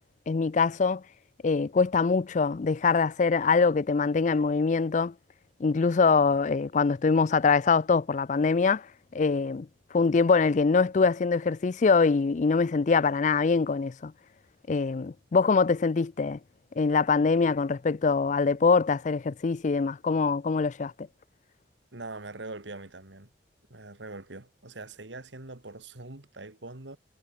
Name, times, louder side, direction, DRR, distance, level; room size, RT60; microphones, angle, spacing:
voice 1, 0.3-1.0 1.4-5.1 5.6-8.9 9.1-9.7 9.9-14.1 14.7-16.4 16.8-20.9, left 4 dB, 45° left, 0.4 m, -24 dB
voice 2, 21.9-23.3 23.7-27.0, right 2 dB, 90° right, 2.5 m, -42 dB
head